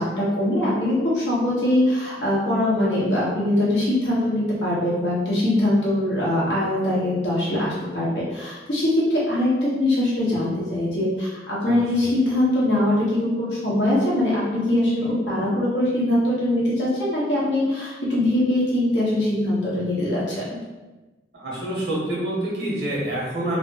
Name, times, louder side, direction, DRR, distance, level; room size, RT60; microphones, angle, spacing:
voice 1, 0.0-20.4, left 1 dB, 80° left, -7 dB, 1.1 m, -22 dB
voice 2, 11.6-12.1 21.3-23.6, right 1 dB, 65° right, -6 dB, 1.1 m, -27 dB
3.2 x 2.1 x 2.8 m, 1.2 s
head